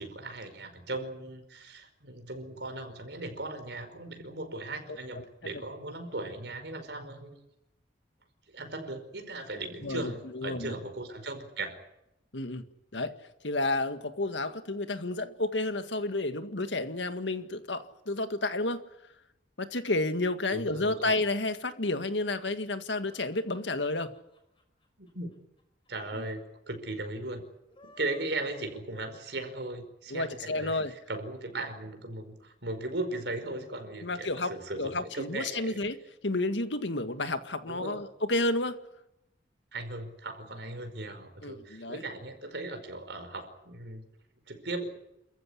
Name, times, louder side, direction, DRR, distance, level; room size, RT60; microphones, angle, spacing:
voice 1, 0.0-7.4 8.5-11.8 12.9-13.1 20.5-21.1 25.0-25.3 25.9-27.4 28.0-35.8 37.7-38.0 39.7-44.1 44.5-44.9, right 2 dB, 70° right, 5.1 m, -38 dB
voice 2, 4.9-5.2 9.8-10.8 12.3-12.6 12.9-13.2 13.4-18.8 19.6-24.1 26.2-26.3 30.1-30.9 34.0-34.5 34.8-36.0 36.2-38.8 41.4-42.0, left 2 dB, 90° left, 1.9 m, -31 dB
sound 1, 22.8-25.9 26.2-26.3 26.5-26.6 27.5-29.7, left 2 dB, 30° left, 5.6 m, -58 dB
28.5 x 15.0 x 9.9 m
head